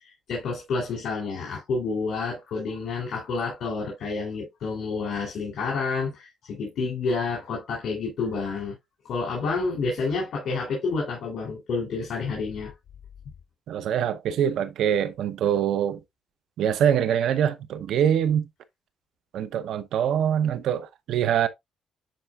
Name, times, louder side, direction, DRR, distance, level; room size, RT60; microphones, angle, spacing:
voice 1, 0.3-8.8 9.1-12.7, left 4 dB, 65° left, 3.1 m, -29 dB
voice 2, 13.7-16.0 16.6-18.5 19.3-21.5, right 9 dB, 75° right, 0.8 m, -24 dB
10.5 x 4.5 x 2.4 m
cardioid pair, 90°, 0 cm